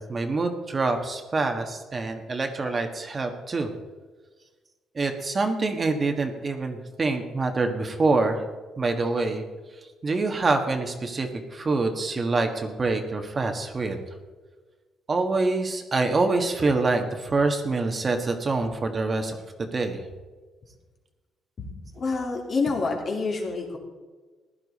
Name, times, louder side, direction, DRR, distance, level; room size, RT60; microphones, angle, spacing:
voice 1, 0.0-3.7 4.9-8.4 8.8-9.4 10.0-14.0 15.1-19.4 19.7-20.0, right 3 dB, 35° right, 5 dB, 1.5 m, -26 dB
voice 2, 22.0-23.8, left 4 dB, 50° left, 0 dB, 2.7 m, -27 dB
15.5 x 10.5 x 4.2 m, 1.3 s
cardioid pair, 90°, 0 cm